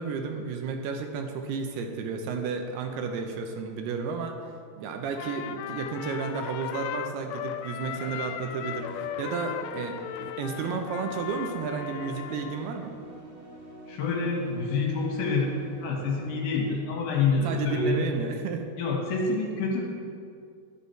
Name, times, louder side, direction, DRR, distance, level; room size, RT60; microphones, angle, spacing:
voice 1, 0.0-4.4 4.8-12.9 17.4-18.7, right 5 dB, 80° right, 5 dB, 2.6 m, -32 dB
Trumpet, 5.1-12.7, left 11 dB, 90° left, 2.7 m, -37 dB
sound 1, 7.8-16.7, right 2 dB, 55° right, 3.8 m, -47 dB
voice 2, 13.9-18.1 18.8-19.9, left 3 dB, 70° left, -1 dB, 3.0 m, -27 dB
10.5 x 10.0 x 4.5 m, 2.3 s
omnidirectional pair, 4.8 m